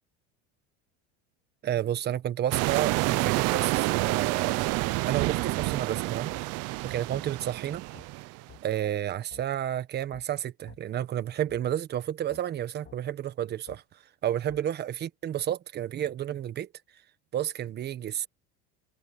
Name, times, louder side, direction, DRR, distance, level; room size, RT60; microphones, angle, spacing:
voice 1, 1.6-6.3 6.8-7.8 8.6-13.8 14.2-16.7 17.3-18.3, right 11 dB, 35° right, 1.3 m, -31 dB
sound 1, 2.5-8.4, right 22 dB, 55° right, 0.7 m, -28 dB
sound 2, 6.3-6.4 7.1-7.3 7.9-8.1 8.5-8.6 9.3-9.4 10.1-10.3 10.7-10.8 11.5-11.6 12.3-12.4 12.8-13.0 13.7-13.8 14.5-14.6, left 10 dB, 35° left, 2.4 m, -51 dB
supercardioid pair, 140°, 30 cm